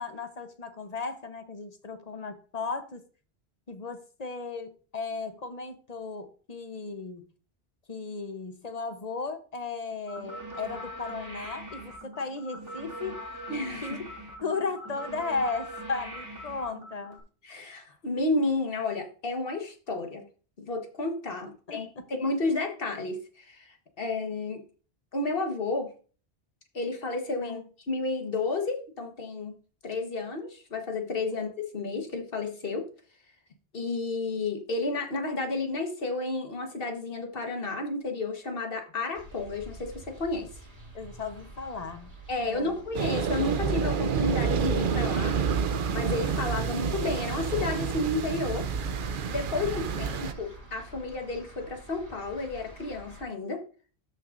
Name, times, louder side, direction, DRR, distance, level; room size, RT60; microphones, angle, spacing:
voice 1, 0.0-3.0 3.7-7.3 7.9-13.2 13.8-14.0 14.4-17.2 21.7-22.1 27.4-27.6 40.9-42.1 42.4-42.7 49.6-50.2, left 4 dB, 40° left, 1.1 m, -35 dB
sound 1, 10.1-17.2, right 1 dB, 20° right, 2.5 m, -41 dB
voice 2, 13.5-14.0 17.4-20.2 20.6-24.6 25.1-25.9 26.7-27.6 27.9-29.5 29.8-32.9 33.7-40.5 42.3-45.3 45.9-48.7 49.3-53.6, left 3 dB, 60° left, 1.6 m, -31 dB
sound 2, 39.1-53.2, right 1 dB, 35° right, 2.8 m, -48 dB
sound 3, 42.9-50.3, right 6 dB, 60° right, 0.8 m, -29 dB
13.0 x 6.1 x 2.6 m
omnidirectional pair, 1.1 m